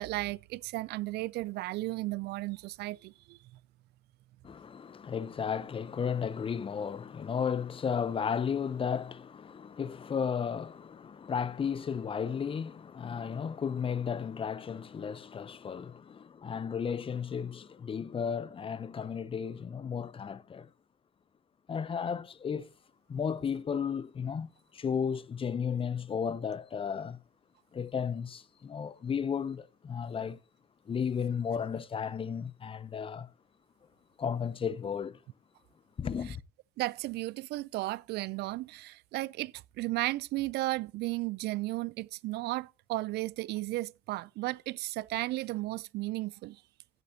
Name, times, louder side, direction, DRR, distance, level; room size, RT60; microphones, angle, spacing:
voice 1, 0.0-3.4 36.8-46.6, right 19 dB, 75° right, 0.4 m, -34 dB
voice 2, 4.4-20.7 21.7-22.7 23.1-27.2 27.7-30.4 30.9-33.3 34.2-35.2 36.0-36.4, left 7 dB, 30° left, 0.8 m, -34 dB
15.5 x 8.2 x 2.8 m
cardioid pair, 110°, 17 cm